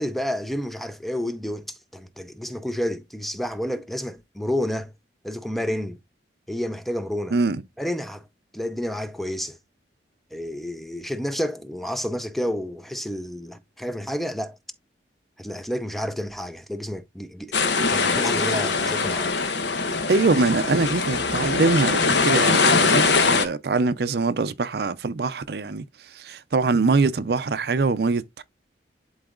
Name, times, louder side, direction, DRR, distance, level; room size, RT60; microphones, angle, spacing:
voice 1, 0.0-4.9 5.2-6.0 6.5-7.4 7.8-8.3 8.5-9.6 10.3-14.6 15.4-19.3, equal, ahead, 0.5 m, -30 dB
voice 2, 7.3-7.6 20.1-28.4, right 3 dB, 60° right, 0.5 m, -23 dB
sound 1, 17.5-23.5, left 4 dB, 80° left, 1.1 m, -22 dB
11.5 x 4.0 x 2.4 m
head